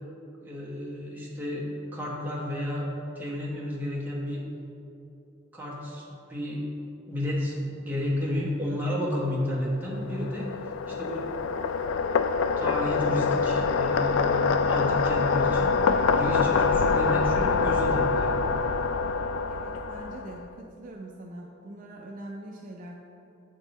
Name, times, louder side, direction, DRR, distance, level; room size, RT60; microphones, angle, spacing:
voice 1, 0.4-2.9 3.1-4.4 5.5-6.7 7.1-10.5 10.9-11.3 12.6-18.3, left 1 dB, 10° right, -5 dB, 1.0 m, -31 dB
sound 1, 9.7-20.4, left 4 dB, 80° left, 0.3 m, -25 dB
voice 2, 19.5-20.4 20.8-23.0, right 1 dB, 40° right, 0 dB, 0.4 m, -42 dB
8.3 x 3.7 x 4.0 m, 2.9 s
head